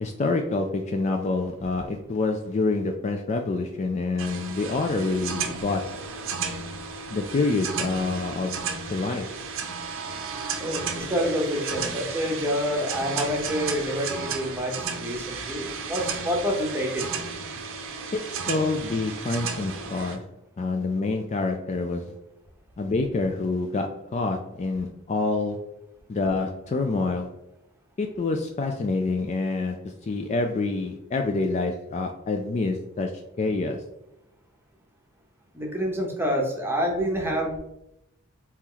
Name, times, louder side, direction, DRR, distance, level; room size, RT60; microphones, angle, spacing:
voice 1, 0.0-6.0 7.1-8.6 8.9-9.3 18.1-20.2 20.6-22.1 22.8-25.7 26.1-27.3 28.0-29.7 30.1-33.1 33.4-33.8, left 3 dB, 30° left, 4 dB, 0.3 m, -27 dB
sound 1, 4.2-20.2, right 5 dB, 60° right, 0.6 m, -33 dB
voice 2, 10.6-17.1 35.5-37.6, equal, 10° right, 1 dB, 0.8 m, -27 dB
4.3 x 3.0 x 3.8 m, 0.86 s
head